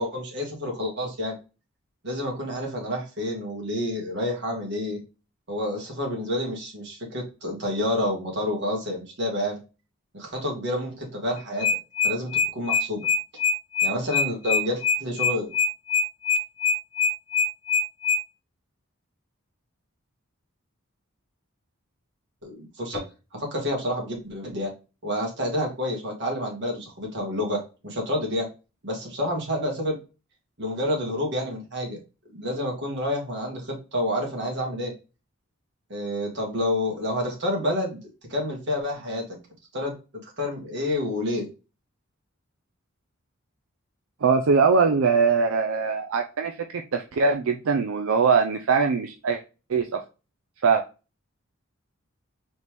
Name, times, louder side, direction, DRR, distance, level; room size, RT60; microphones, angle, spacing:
voice 1, 0.0-1.4 2.0-5.0 5.5-9.6 10.1-11.7 12.0-13.1 13.8-15.5 22.4-23.0 23.3-24.7 25.0-28.5 28.8-30.0 30.6-32.0 32.3-34.9 35.9-39.4 39.7-40.0 40.2-41.5, left 1 dB, 55° right, 0 dB, 1.8 m, -29 dB
sound 1, 11.4-18.2, left 4 dB, 75° left, 0.5 m, -23 dB
voice 2, 44.2-46.6 46.9-49.4 49.7-50.0 50.6-50.8, right 5 dB, 75° right, 5 dB, 0.5 m, -21 dB
4.1 x 3.5 x 3.0 m, 0.31 s
head